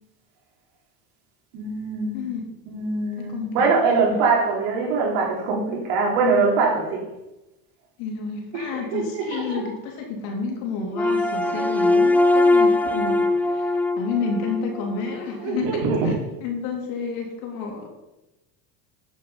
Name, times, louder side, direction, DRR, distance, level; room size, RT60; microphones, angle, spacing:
voice 1, 1.5-2.3 2.7-7.1 8.5-9.7 15.4-16.2, right 4 dB, 70° right, -1 dB, 3.7 m, -23 dB
voice 2, 3.2-4.2 8.0-16.1 16.4-17.9, left 4 dB, 70° left, 1 dB, 3.3 m, -30 dB
sound 1, 10.9-15.3, left 2 dB, 5° left, 0.4 m, -21 dB
9.5 x 6.9 x 5.7 m, 0.98 s
supercardioid pair, 110°, 49 cm